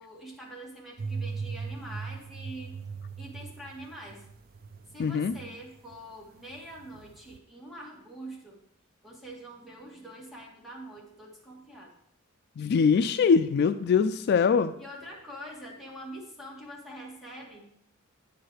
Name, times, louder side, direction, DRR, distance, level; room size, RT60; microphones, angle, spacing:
voice 1, 0.0-2.8 3.2-4.2 4.9-8.6 9.0-11.9 14.8-17.7, right 1 dB, ahead, -2 dB, 1.8 m, -44 dB
sound 1, 1.0-6.0 6.3-7.4, right 5 dB, 45° right, 0.4 m, -39 dB
voice 2, 5.0-5.3 12.6-14.7, left 6 dB, 50° left, 11 dB, 0.3 m, -23 dB
9.3 x 4.7 x 6.3 m, 0.72 s
head